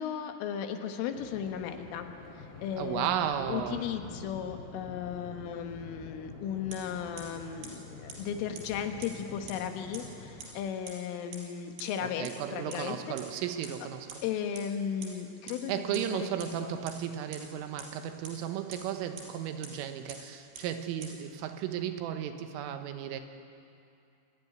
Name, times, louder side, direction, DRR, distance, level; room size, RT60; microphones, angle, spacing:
voice 1, 0.0-2.1 2.6-13.2 14.2-16.8, left 8 dB, 80° left, 6 dB, 3.9 m, -36 dB
Waves surf, 1.1-10.8, left 3 dB, 60° left, 6.5 m, -48 dB
voice 2, 2.8-3.9 12.0-14.2 15.7-23.2, right 10 dB, 90° right, 7 dB, 3.8 m, -34 dB
sound 1, 6.7-6.8 7.2-7.3 7.6-7.7 8.1-8.2 8.5-8.6 9.0-9.1 9.5-9.6 9.9-10.0 10.4-10.5 10.9-11.0 11.3-11.4 11.8-11.9 12.2-12.3 12.7-12.8 13.2-13.3 13.6-13.7 14.1-14.2 14.5-14.6 15.0-15.1 15.5-15.6 15.9-16.0 16.4-16.5 16.9-17.0 17.3-17.4 17.8-17.9 18.2-18.3 18.7-18.8 19.2-19.3 19.6-19.7 20.1-20.2 20.5-20.6 21.0-21.1, right 7 dB, 55° right, 6.1 m, -42 dB
26.5 x 16.0 x 9.9 m, 2.5 s
omnidirectional pair, 5.7 m